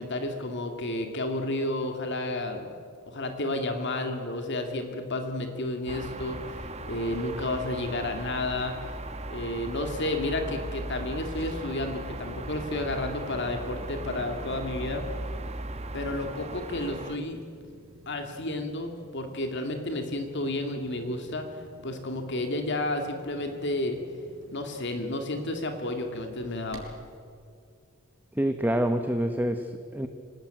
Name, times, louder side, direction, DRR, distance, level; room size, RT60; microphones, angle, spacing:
voice 1, 0.0-2.7 3.1-8.8 9.3-15.0 15.9-17.4 18.1-21.5 21.8-24.0 24.5-26.9, left 2 dB, 55° left, 5 dB, 2.4 m, -31 dB
sound 1, 5.9-17.2, right 2 dB, 30° right, 1.2 m, -38 dB
sound 2, 10.9-27.2, right 1 dB, 70° right, 6.2 m, -53 dB
voice 2, 28.4-30.1, right 1 dB, 10° right, 7 dB, 0.9 m, -27 dB
26.0 x 18.5 x 9.1 m, 2.3 s
head